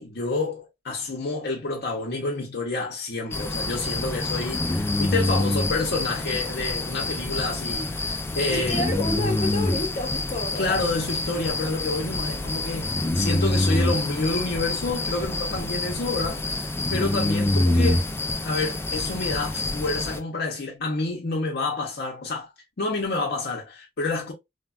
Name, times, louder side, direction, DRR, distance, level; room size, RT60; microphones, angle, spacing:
voice 1, 0.0-8.8 10.6-18.1 18.4-22.5 22.8-24.3, left 3 dB, 60° left, 0.7 m, -28 dB
sound 1, 3.3-20.2, left 2 dB, 15° left, 0.3 m, -26 dB
voice 2, 8.5-10.9, left 2 dB, 40° left, 0.9 m, -29 dB
3.4 x 2.2 x 2.2 m
head